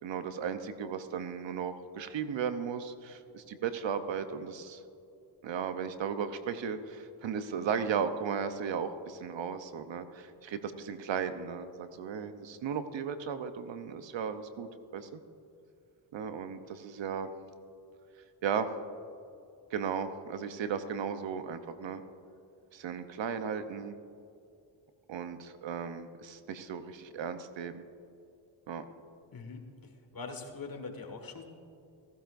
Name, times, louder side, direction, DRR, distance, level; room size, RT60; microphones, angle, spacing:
voice 1, 0.0-4.8 5.4-14.7 14.9-15.2 16.1-17.3 18.4-18.7 19.7-22.0 22.7-24.0 25.1-27.9 28.7-28.8, right 7 dB, 65° right, 10 dB, 0.8 m, -35 dB
voice 2, 29.3-31.4, left 4 dB, 45° left, 4 dB, 1.8 m, -43 dB
15.0 x 15.0 x 2.6 m, 2.6 s
cardioid pair, 65°, 47 cm